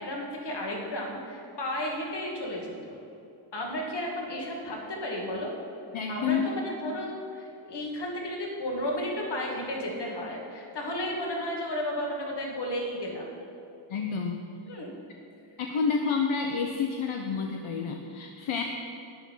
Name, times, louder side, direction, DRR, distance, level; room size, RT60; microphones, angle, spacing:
voice 1, 0.0-3.0 3.5-5.5 6.1-13.4 14.7-14.9, left 1 dB, 55° left, -1 dB, 2.5 m, -33 dB
voice 2, 5.9-6.5 13.9-14.5 15.6-18.6, left 5 dB, 75° left, 3 dB, 0.9 m, -29 dB
11.5 x 10.0 x 5.6 m, 2.6 s
wide cardioid pair, 155°, 49 cm